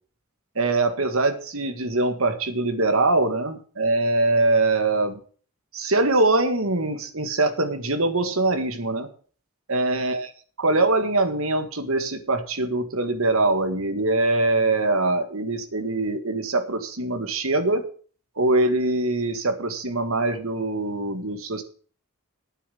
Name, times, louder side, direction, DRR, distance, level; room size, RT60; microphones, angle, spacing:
voice 1, 0.6-5.2 5.7-9.1 9.7-10.3 10.6-17.9 18.4-21.6, right 2 dB, 65° right, 8 dB, 1.8 m, -23 dB
9.3 x 7.5 x 8.5 m, 0.42 s
head